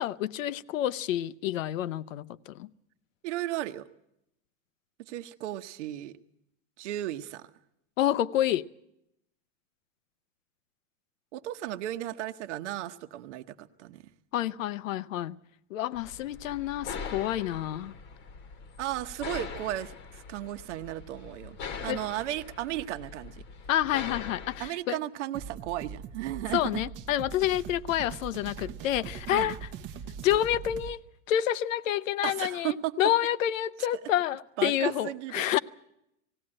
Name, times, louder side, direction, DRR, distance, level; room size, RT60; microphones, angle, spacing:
voice 1, 0.0-2.7 8.0-8.7 14.3-15.4 15.7-17.9 21.9-22.0 23.7-25.0 26.5-29.6 30.2-31.0 31.3-35.6, left 12 dB, 85° left, 0.8 m, -28 dB
voice 2, 3.2-3.9 5.0-6.1 6.8-7.5 11.3-14.1 18.8-21.6 21.8-23.4 24.6-26.8 29.3-29.6 32.2-32.9 34.6-35.4, right 14 dB, 65° right, 1.0 m, -35 dB
sound 1, 16.0-24.7, left 5 dB, 30° left, 1.1 m, -42 dB
sound 2, 25.3-31.0, right 7 dB, 30° right, 0.8 m, -41 dB
19.0 x 16.5 x 8.7 m
supercardioid pair, 160°, 38 cm